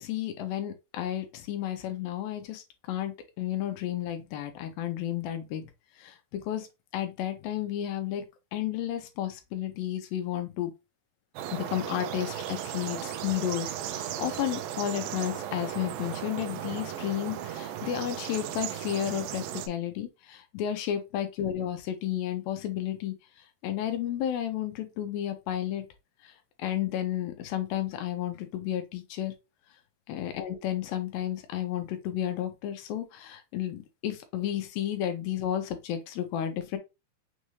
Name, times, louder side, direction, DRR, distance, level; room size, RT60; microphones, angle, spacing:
voice 1, 0.0-5.7 6.0-6.7 6.9-8.3 8.5-10.7 11.5-23.1 23.6-25.8 26.2-26.3 26.6-29.3 30.1-36.8, left 11 dB, 80° left, 2.6 m, -32 dB
sound 1, 11.4-19.7, right 11 dB, 80° right, 2.3 m, -36 dB
6.5 x 2.6 x 3.1 m
omnidirectional pair, 4.3 m